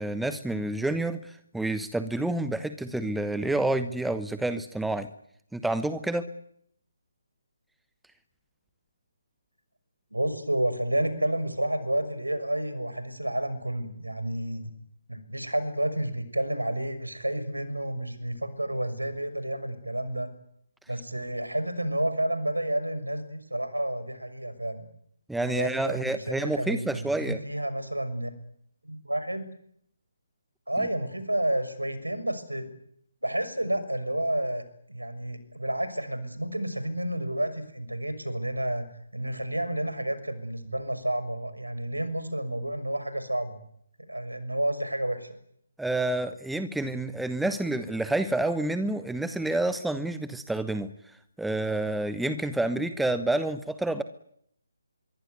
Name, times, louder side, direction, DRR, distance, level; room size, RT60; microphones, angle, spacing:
voice 1, 0.0-5.1 5.5-6.3 25.3-27.4 45.8-50.9 51.4-54.0, right 2 dB, ahead, 11 dB, 1.0 m, -28 dB
voice 2, 10.1-14.6 15.1-20.3 20.9-24.9 25.4-28.3 28.8-29.5 30.7-32.7 33.2-34.6 34.9-38.9 39.1-43.6 44.1-45.4, right 1 dB, 80° right, 12 dB, 6.3 m, -30 dB
25.5 x 23.5 x 9.6 m, 0.70 s
figure-of-eight pair, 145°, 0 cm